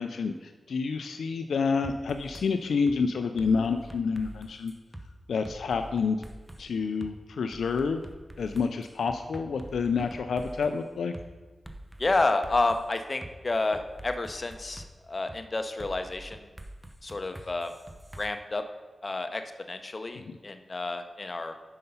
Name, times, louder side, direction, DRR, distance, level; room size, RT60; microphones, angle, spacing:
voice 1, 0.0-4.7 5.3-6.2 6.6-8.0 8.4-11.1 20.3-20.4, left 5 dB, 80° left, 7 dB, 0.3 m, -28 dB
sound 1, 1.8-2.5 2.9-3.0 3.4-5.1 5.4-6.6 7.0-7.1 7.5-10.8 11.1-11.3 11.7-13.3 13.7-14.9 15.3-15.4 15.8-18.3, right 1 dB, 15° right, 0.7 m, -45 dB
voice 2, 12.0-16.5 17.0-17.7 18.2-18.6 19.0-21.6, left 2 dB, 45° left, 7 dB, 0.6 m, -30 dB
5.7 x 5.4 x 5.3 m, 1.3 s
cardioid pair, 40°, 0 cm